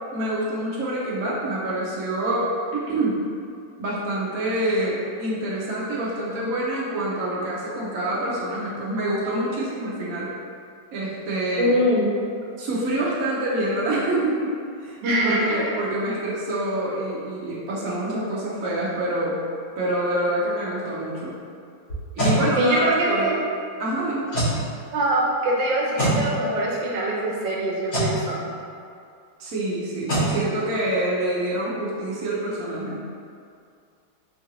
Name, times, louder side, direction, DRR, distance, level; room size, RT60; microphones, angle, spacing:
voice 1, 0.1-3.3 3.8-10.3 10.9-11.8 12.6-14.5 14.8-19.4 19.8-21.4 22.1-23.3 23.8-24.3 29.4-33.0, right 1 dB, 60° right, -7 dB, 1.0 m, -26 dB
voice 2, 11.6-12.1 15.0-15.6 22.6-23.4 24.9-28.4, right 1 dB, 80° right, -3 dB, 1.3 m, -23 dB
sound 1, 21.9-22.4 24.3-24.6 26.0-26.2 27.9-28.2 30.1-30.3, right 1 dB, 70° left, 2.4 m, -22 dB
4.6 x 2.5 x 2.9 m, 2.4 s
omnidirectional pair, 2.0 m